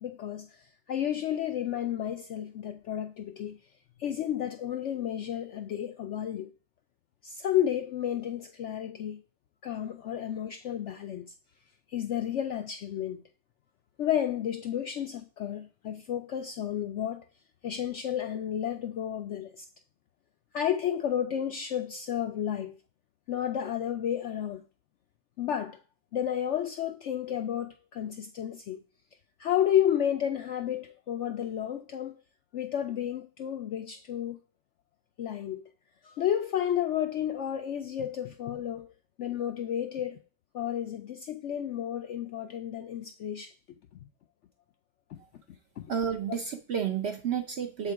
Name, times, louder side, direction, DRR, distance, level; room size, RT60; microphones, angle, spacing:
voice 1, 0.0-3.6 4.0-6.5 7.2-9.2 9.6-11.3 11.9-13.2 14.0-17.2 17.6-19.6 20.5-22.8 23.3-24.6 25.4-25.8 26.1-28.8 29.4-32.2 32.5-34.4 35.2-35.6 36.0-38.9 39.2-40.2 40.5-43.5 45.1-45.2 45.8-45.9, left 10 dB, 70° left, 0.7 m, -31 dB
voice 2, 45.9-47.9, right 7 dB, 60° right, 0.7 m, -31 dB
7.4 x 3.7 x 4.6 m
omnidirectional pair, 1.7 m